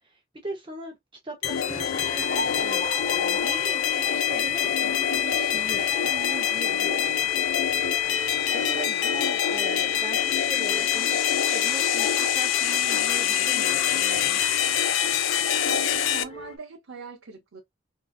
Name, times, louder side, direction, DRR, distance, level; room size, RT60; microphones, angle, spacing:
voice 1, 0.4-1.0 1.2-7.1 8.5-11.2 11.5-14.4, right 2 dB, 25° right, 0.8 m, -40 dB
sound 1, 1.4-16.2, left 9 dB, 85° left, 0.4 m, -25 dB
sound 2, 1.4-16.6, left 2 dB, 30° left, 0.6 m, -38 dB
voice 2, 15.6-17.6, right 4 dB, 80° right, 0.7 m, -40 dB
3.8 x 2.6 x 2.3 m
head